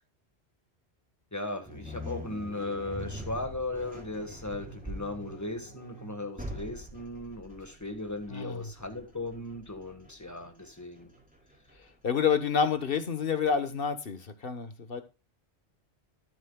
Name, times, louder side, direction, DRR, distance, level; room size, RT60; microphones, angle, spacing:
voice 1, 1.3-11.1, left 2 dB, 15° left, 6 dB, 1.6 m, -37 dB
sound 1, 1.6-12.8, equal, 5° right, 4.7 m, -44 dB
voice 2, 8.3-8.6 12.0-15.0, left 6 dB, 60° left, 10 dB, 1.4 m, -28 dB
12.5 x 9.6 x 2.3 m, 0.28 s
omnidirectional pair, 1.1 m